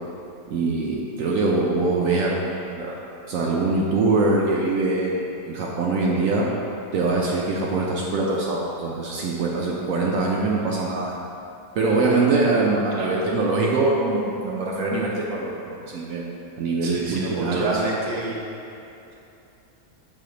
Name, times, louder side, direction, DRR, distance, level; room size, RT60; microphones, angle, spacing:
voice 1, 0.5-3.0 3.3-6.5 6.9-11.2 11.8-16.2 16.6-17.7, right 3 dB, 65° right, -3 dB, 0.9 m, -23 dB
voice 2, 16.8-18.4, right 2 dB, 35° right, -4 dB, 0.8 m, -28 dB
6.6 x 4.1 x 3.9 m, 2.8 s
omnidirectional pair, 1.6 m